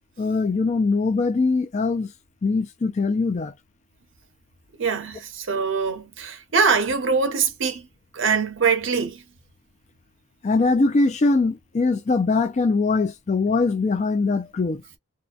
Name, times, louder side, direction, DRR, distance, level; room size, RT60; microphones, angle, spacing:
voice 1, 0.2-2.1 2.4-3.5 10.4-14.8, left 3 dB, 35° left, 0.3 m, -22 dB
voice 2, 4.8-7.8 8.1-9.2, right 5 dB, 65° right, 0.8 m, -23 dB
2.7 x 2.1 x 2.4 m
head